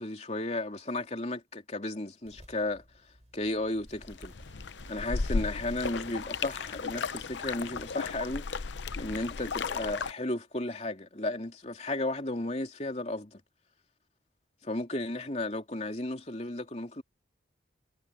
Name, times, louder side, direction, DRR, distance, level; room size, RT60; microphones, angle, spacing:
voice 1, 0.0-2.8 3.3-4.3 4.9-8.5 9.0-13.4 14.6-17.0, left 2 dB, 35° left, 3.2 m, -34 dB
sound 1, 2.3-7.9, equal, 40° right, 5.2 m, -51 dB
sound 2, 4.1-10.1, left 4 dB, 85° left, 0.7 m, -35 dB
head